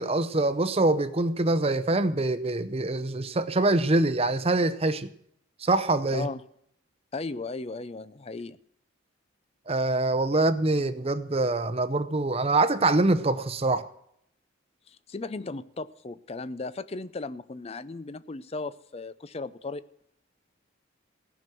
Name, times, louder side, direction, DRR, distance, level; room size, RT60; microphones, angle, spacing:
voice 1, 0.0-5.1 5.6-6.3 9.7-13.9, right 2 dB, 30° right, 0.7 m, -24 dB
voice 2, 6.1-6.4 7.1-8.6 14.9-19.8, left 3 dB, 30° left, 0.5 m, -36 dB
17.0 x 6.1 x 9.1 m
head